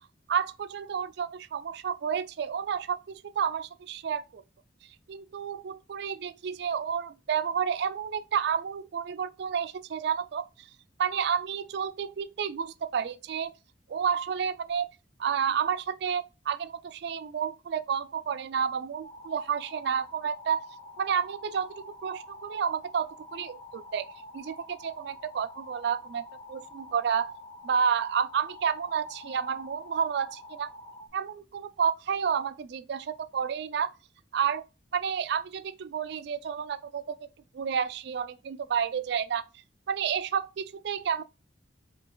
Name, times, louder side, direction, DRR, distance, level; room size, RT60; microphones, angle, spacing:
voice 1, 0.3-4.4 5.1-10.7 11.0-13.5 13.9-14.9 15.2-20.7 21.0-24.1 24.3-26.2 26.5-27.4 27.6-30.7 31.1-33.9 34.3-34.6 34.9-37.3 37.5-39.4 39.9-41.2, right 7 dB, 65° right, 0.3 m, -30 dB
sound 1, 19.0-31.1, left 1 dB, 25° left, 0.8 m, -47 dB
4.8 x 3.0 x 2.2 m
head